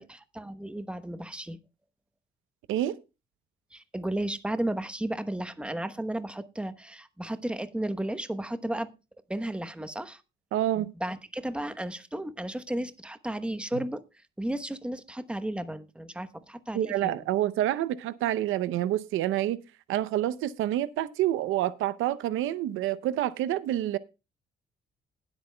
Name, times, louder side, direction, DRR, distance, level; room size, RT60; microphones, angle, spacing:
voice 1, 0.0-1.6 3.7-8.9 9.3-10.2 10.8-14.0 14.4-17.3, right 1 dB, 5° right, 1.0 m, -34 dB
voice 2, 10.5-10.9 16.7-19.6 19.9-24.0, right 13 dB, 90° right, 0.6 m, -28 dB
20.0 x 8.1 x 2.2 m
cardioid pair, 90°, 20 cm